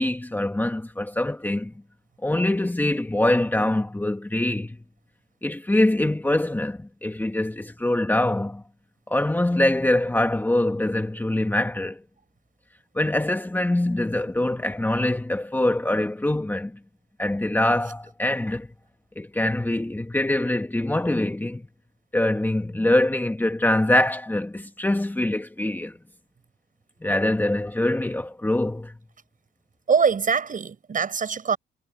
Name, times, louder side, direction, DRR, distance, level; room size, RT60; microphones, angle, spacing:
voice 1, 0.0-1.7 2.2-4.8 5.4-8.6 9.1-12.0 13.0-16.8 17.2-18.7 19.2-21.7 22.1-26.0 27.0-28.9, left 1 dB, 10° left, 1.9 m, -24 dB
voice 2, 29.9-31.6, right 6 dB, 40° right, 7.2 m, -23 dB
cardioid pair, 90°, 20 cm